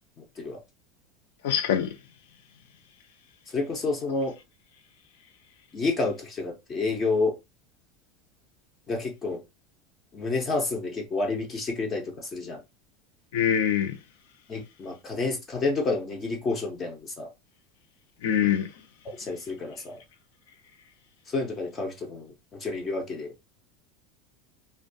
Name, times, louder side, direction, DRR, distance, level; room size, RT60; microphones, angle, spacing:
voice 1, 0.2-0.6 3.5-4.3 5.7-7.4 8.9-9.4 10.1-12.6 14.5-17.3 19.0-20.0 21.3-23.3, left 3 dB, 25° left, 0.5 m, -29 dB
voice 2, 1.4-1.9 13.3-14.0 18.2-18.7, left 9 dB, 80° left, 0.5 m, -24 dB
2.3 x 2.1 x 2.5 m
supercardioid pair, 145°, 0 cm